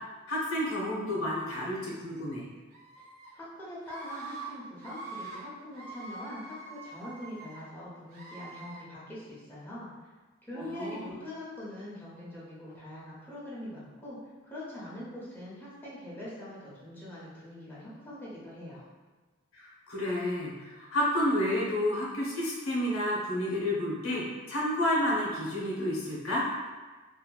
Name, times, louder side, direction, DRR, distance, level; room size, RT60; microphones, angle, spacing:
voice 1, 0.3-2.5 10.5-11.1 19.5-26.5, left 1 dB, 80° left, -4 dB, 0.7 m, -30 dB
Screaming, 2.7-3.3 3.8-4.5 4.8-5.4 5.7-7.6 8.1-8.8, right 3 dB, 80° right, 0.9 m, -44 dB
voice 2, 3.3-9.9 10.5-14.2 14.4-18.8, left 1 dB, 10° left, -9 dB, 0.6 m, -43 dB
2.8 x 2.5 x 2.2 m, 1.3 s
head